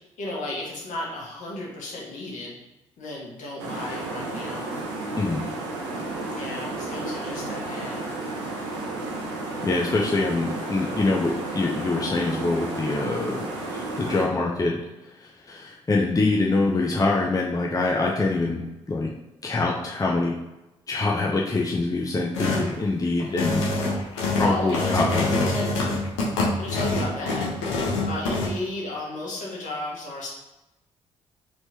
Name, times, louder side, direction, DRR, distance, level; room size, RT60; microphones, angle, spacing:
voice 1, 0.2-2.6 3.0-4.7 6.3-8.0 24.4-25.1 25.5-25.7 26.6-27.8 28.1-30.3, left 2 dB, 60° left, -3 dB, 1.4 m, -33 dB
sound 1, 3.6-14.2, right 2 dB, 85° right, 0.7 m, -32 dB
voice 2, 9.6-13.4 13.7-14.8 15.2-19.1 19.4-20.4 20.9-23.6 24.3-25.3, left 3 dB, 25° left, -2 dB, 0.6 m, -24 dB
sound 2, 22.3-22.7 23.2-28.5, left 2 dB, 80° left, 0.8 m, -25 dB
4.4 x 3.2 x 2.8 m, 1.0 s
hypercardioid pair, 40°, 15 cm